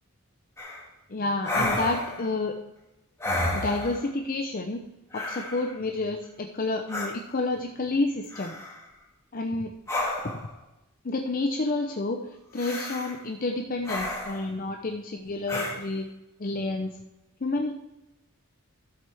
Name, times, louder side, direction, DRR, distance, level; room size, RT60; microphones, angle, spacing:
sound 1, 0.6-0.8 1.4-2.3 3.2-4.1 5.1-5.7 6.9-7.1 8.3-8.8 9.9-10.5 12.6-13.2 13.8-14.5 15.5-15.8, left 1 dB, 15° left, 1.7 m, -31 dB
voice 1, 1.1-2.6 3.5-4.8 5.1-8.6 9.3-9.7 10.2-10.4 11.0-16.1 16.4-17.0 17.4-17.7, left 2 dB, 40° left, 4 dB, 0.6 m, -29 dB
13.5 x 7.7 x 3.4 m, 0.96 s
head